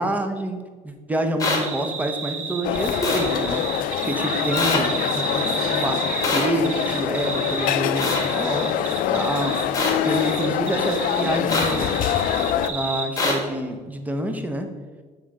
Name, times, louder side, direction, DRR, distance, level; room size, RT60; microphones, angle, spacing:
voice 1, 0.0-3.6 4.0-9.6 10.0-11.9 12.7-14.7, right 1 dB, 10° right, 6 dB, 0.7 m, -27 dB
sound 1, 1.4-1.6 3.0-3.2 4.6-4.8 6.2-6.5 8.0-8.2 9.7-9.9 11.5-11.7 13.2-13.3, left 2 dB, 25° left, 1.5 m, -23 dB
sound 2, 1.4-6.3 6.6-9.7 10.0-13.1, right 4 dB, 50° right, 1.0 m, -31 dB
sound 3, 2.6-12.7, left 10 dB, 65° left, 0.4 m, -25 dB
7.2 x 4.5 x 3.7 m, 1.5 s
cardioid pair, 95°, 15 cm